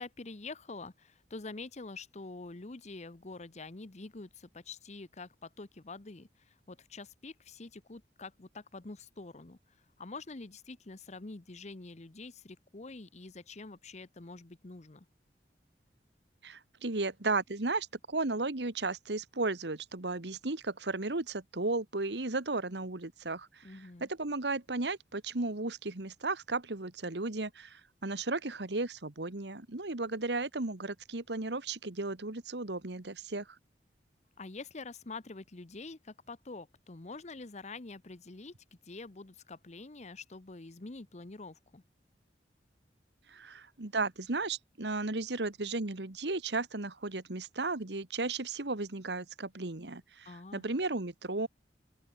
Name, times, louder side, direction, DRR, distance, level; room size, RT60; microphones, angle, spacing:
voice 1, 0.0-9.6 10.0-15.1 23.6-24.1 34.4-38.5 38.8-41.8 50.2-50.6, left 3 dB, 40° left, 0.9 m, -46 dB
voice 2, 16.4-23.7 24.0-33.5 43.3-51.5, right 3 dB, 75° right, 1.6 m, -35 dB
open air
head